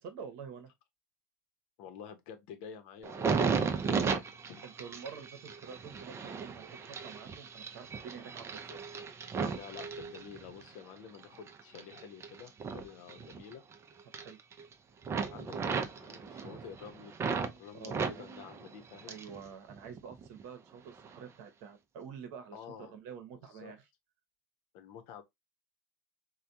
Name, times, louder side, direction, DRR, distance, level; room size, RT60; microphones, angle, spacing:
voice 1, 0.0-0.7 4.6-8.9 14.1-14.4 17.7-18.3 19.1-23.9, right 6 dB, 65° right, 0.9 m, -48 dB
voice 2, 1.8-4.2 4.5-4.6 9.5-13.6 15.3-17.2 17.6-19.1 22.5-22.9 23.5-23.7 24.7-25.2, left 7 dB, 60° left, 0.8 m, -49 dB
sound 1, 3.0-10.7 11.1-13.7 14.0-14.7 15.0-17.5 17.8-19.4 19.7-20.4 21.0-21.2, right 5 dB, 30° right, 0.5 m, -35 dB
3.3 x 2.2 x 2.6 m
hypercardioid pair, 80°, 9 cm